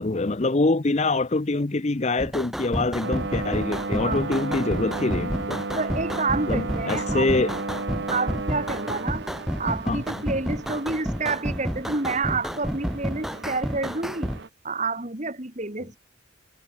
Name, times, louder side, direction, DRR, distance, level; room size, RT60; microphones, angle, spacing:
voice 1, 0.0-5.6 6.5-7.5 9.9-10.0, left 2 dB, 35° left, 0.6 m, -25 dB
sound 1, 2.2-14.4, equal, ahead, 2.2 m, -30 dB
sound 2, 3.0-14.5, right 3 dB, 55° right, 0.9 m, -34 dB
voice 2, 4.0-4.7 5.8-7.5 8.1-9.3 9.6-14.3 14.6-16.0, right 3 dB, 35° right, 2.2 m, -29 dB
head